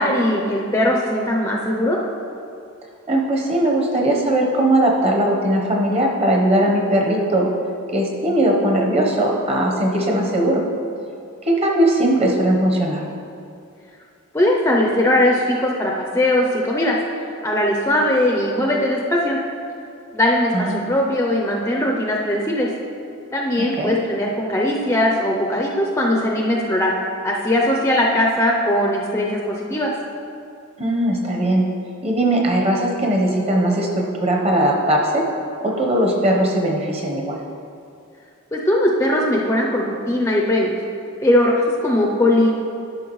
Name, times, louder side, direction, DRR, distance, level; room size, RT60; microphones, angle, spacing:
voice 1, 0.0-2.0 14.3-17.0 17.3-19.4 20.1-22.7 23.3-26.9 27.2-29.9 38.5-40.7 41.2-42.5, left 1 dB, 10° left, -1 dB, 0.5 m, -19 dB
voice 2, 3.1-7.5 7.9-10.6 11.4-13.0 20.5-20.8 23.8-24.0 30.8-31.6 32.0-35.3 35.6-37.4, right 1 dB, 30° right, -1 dB, 0.9 m, -19 dB
11.5 x 5.7 x 3.1 m, 2.5 s
head